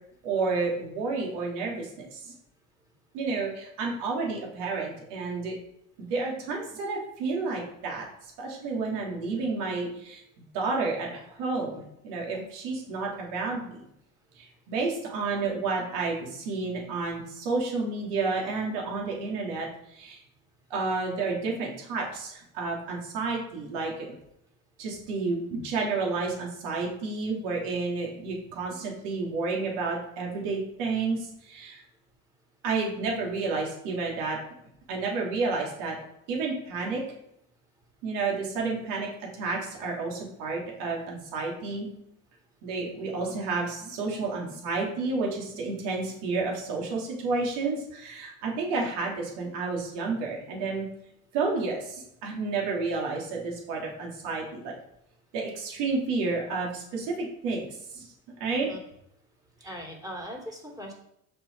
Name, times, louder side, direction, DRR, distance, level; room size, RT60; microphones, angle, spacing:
voice 1, 0.2-2.3 3.1-5.5 6.0-8.0 8.4-10.2 10.5-13.8 14.4-20.2 20.7-24.0 24.8-31.8 32.6-34.4 34.9-36.0 36.3-37.0 38.0-39.1 39.3-41.9 42.6-50.9 51.3-54.7 55.3-58.1 58.4-58.7, right 3 dB, 70° right, -1 dB, 3.1 m, -30 dB
voice 2, 59.6-60.9, equal, 10° right, 1 dB, 3.2 m, -40 dB
6.5 x 5.9 x 5.5 m, 0.76 s
hypercardioid pair, 80°, 44 cm